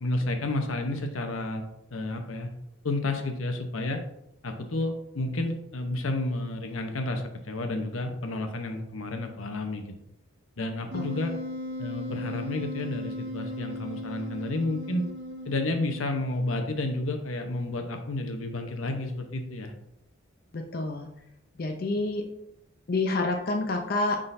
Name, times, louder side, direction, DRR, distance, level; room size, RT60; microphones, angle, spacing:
voice 1, 0.0-1.6 1.9-2.5 2.8-4.0 4.4-9.9 10.6-11.3 11.8-15.0 15.4-19.7, left 2 dB, 85° left, 5 dB, 0.9 m, -31 dB
Wind instrument woodwind instrument, 10.9-16.3, left 1 dB, 60° right, 1.0 m, -37 dB
voice 2, 20.5-21.1 21.6-22.2 22.9-24.2, left 2 dB, 45° left, 3 dB, 0.5 m, -28 dB
9.7 x 3.8 x 2.6 m, 0.81 s
head